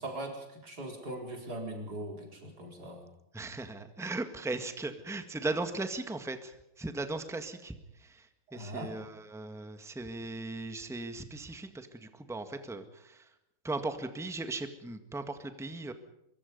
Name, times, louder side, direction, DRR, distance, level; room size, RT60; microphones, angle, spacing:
voice 1, 0.0-3.1 8.5-8.9, right 1 dB, 45° right, 2 dB, 5.0 m, -40 dB
voice 2, 3.3-13.3 13.6-15.9, right 2 dB, ahead, 8 dB, 1.5 m, -38 dB
24.0 x 23.5 x 5.4 m, 0.87 s
omnidirectional pair, 2.4 m